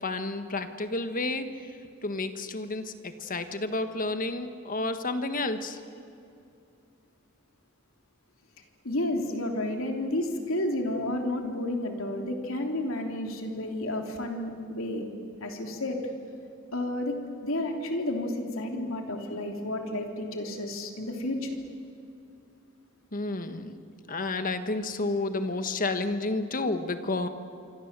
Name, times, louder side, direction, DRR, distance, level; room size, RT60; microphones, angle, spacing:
voice 1, 0.0-1.4 2.0-5.8 23.1-23.7 24.1-27.3, left 2 dB, 40° left, 9 dB, 1.5 m, -30 dB
voice 2, 8.8-15.1 15.4-16.0 16.7-17.1 17.4-21.5, left 1 dB, 70° left, 3 dB, 3.3 m, -31 dB
26.0 x 25.5 x 7.6 m, 2.5 s
head